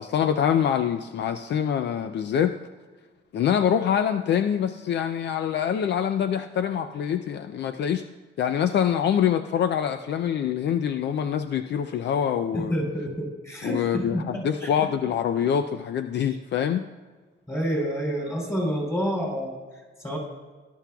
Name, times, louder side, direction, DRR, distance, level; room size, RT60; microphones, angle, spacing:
voice 1, 0.0-2.6 3.3-8.1 8.4-12.7 13.6-16.9, left 8 dB, 60° left, 8 dB, 0.4 m, -25 dB
voice 2, 12.5-14.9 17.5-20.2, equal, 15° left, -1 dB, 3.1 m, -29 dB
19.5 x 11.5 x 2.3 m, 1.4 s
wide cardioid pair, 165°, 20 cm